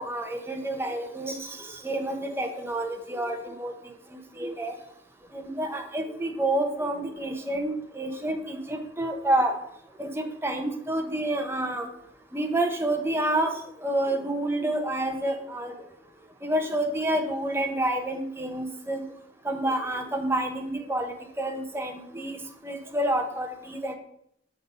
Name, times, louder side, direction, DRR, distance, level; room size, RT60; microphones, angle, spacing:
voice 1, 0.0-4.7 5.3-9.5 10.0-11.9 12.3-15.7 16.4-19.0 19.4-23.9, right 1 dB, 15° right, 4 dB, 0.8 m, -29 dB
6.5 x 4.1 x 5.4 m, 0.73 s
head